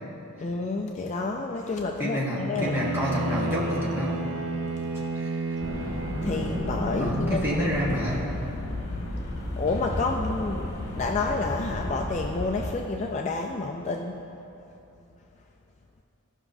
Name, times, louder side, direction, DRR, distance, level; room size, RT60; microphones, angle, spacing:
voice 1, 0.4-2.8 6.2-7.6 9.6-14.2, left 3 dB, 30° left, 1 dB, 0.3 m, -29 dB
voice 2, 2.0-4.2 5.1-5.3 7.0-8.3, equal, 10° right, -6 dB, 1.2 m, -28 dB
Bowed string instrument, 2.5-7.0, right 2 dB, 60° right, 0.6 m, -31 dB
sound 1, 5.6-12.8, left 1 dB, 65° left, 1.3 m, -32 dB
15.0 x 5.7 x 2.6 m, 2.8 s
head